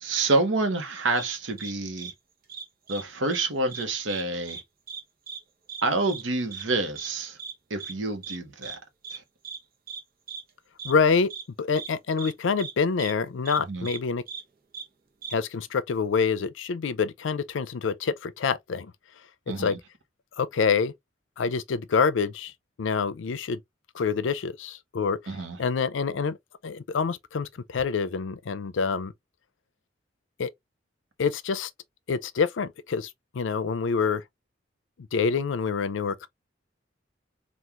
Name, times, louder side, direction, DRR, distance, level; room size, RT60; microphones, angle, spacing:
voice 1, 0.0-2.1 2.9-4.6 5.8-7.4 7.7-8.8 9.1-9.2 13.7-13.9 19.5-19.8 25.3-25.6, right 2 dB, 85° right, 1.0 m, -28 dB
sound 1, 1.2-1.3 1.6-1.7 2.0-2.1 2.5-3.0 3.3-3.4 3.7-4.2 4.5-4.6 4.9-5.0 5.3-5.4 5.7-5.8 6.1-6.2 6.5-6.6 7.0-7.1 7.4-7.5 7.8-7.9 8.2-8.4 8.6-8.8 9.0-9.2 9.4-9.6 9.9-10.0 10.3-10.4 10.8-10.9 11.3-11.4 11.8-11.9 12.2-12.3 12.6-12.7 13.0-13.1 13.5-13.6 13.9-14.0 14.3-14.4 14.7-14.9 15.2-15.3, right 6 dB, 50° right, 0.8 m, -38 dB
voice 2, 10.8-11.3 11.6-14.2 15.3-18.9 19.6-19.8 20.4-20.9 21.4-22.5 22.8-23.6 23.9-26.4 26.6-29.1 30.4-30.5 31.2-31.7 32.1-34.2 35.1-36.3, left 5 dB, 85° left, 0.5 m, -26 dB
3.6 x 2.4 x 2.8 m
head